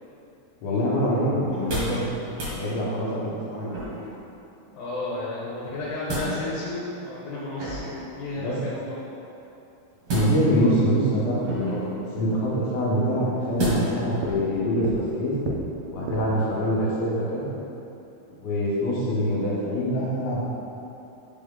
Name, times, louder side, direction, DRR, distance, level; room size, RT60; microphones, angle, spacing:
voice 1, 0.6-2.1 2.5-3.7 8.3-8.5 10.1-15.4 15.9-17.5 18.4-20.4, equal, 70° left, -7 dB, 2.9 m, -25 dB
sound 1, 1.5-2.0 2.3-2.6 3.7-4.2 5.6-6.3 7.6-8.0 10.0-10.7 11.4-11.9 13.6-14.1 14.5-14.6, right 1 dB, 50° right, 2.1 m, -30 dB
voice 2, 4.7-9.0 10.7-10.8, left 2 dB, 90° left, -7 dB, 2.9 m, -32 dB
sound 2, 13.6-16.5, right 3 dB, 80° right, 2.2 m, -35 dB
5.5 x 4.9 x 3.7 m, 2.9 s
omnidirectional pair, 4.8 m